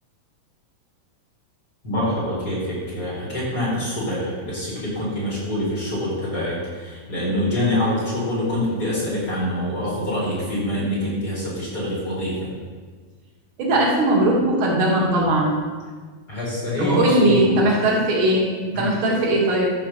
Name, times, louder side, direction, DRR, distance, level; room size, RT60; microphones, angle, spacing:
voice 1, 1.8-12.3 16.3-17.6 18.7-18.9, left 1 dB, 25° left, -8 dB, 4.9 m, -25 dB
voice 2, 13.6-15.5 16.8-19.7, right 1 dB, 75° right, -3 dB, 4.2 m, -19 dB
13.0 x 6.0 x 7.4 m, 1.5 s
omnidirectional pair, 4.3 m